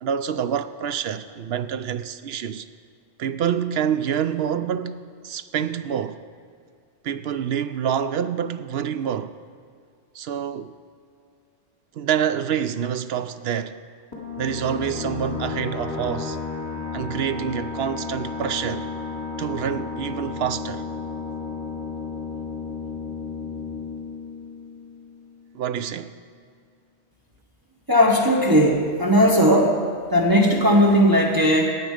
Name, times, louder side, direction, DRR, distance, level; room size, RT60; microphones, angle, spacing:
voice 1, 0.0-2.7 3.2-6.2 7.0-9.3 10.1-10.7 11.9-13.8 14.4-16.4 16.9-18.9 19.4-20.8 25.5-26.2, right 8 dB, 65° right, 0.8 m, -27 dB
sound 1, 14.1-25.4, left 4 dB, 20° left, 2.5 m, -33 dB
voice 2, 27.9-29.8 30.1-31.7, equal, 20° right, 1.3 m, -17 dB
17.5 x 9.0 x 5.0 m
omnidirectional pair, 1.2 m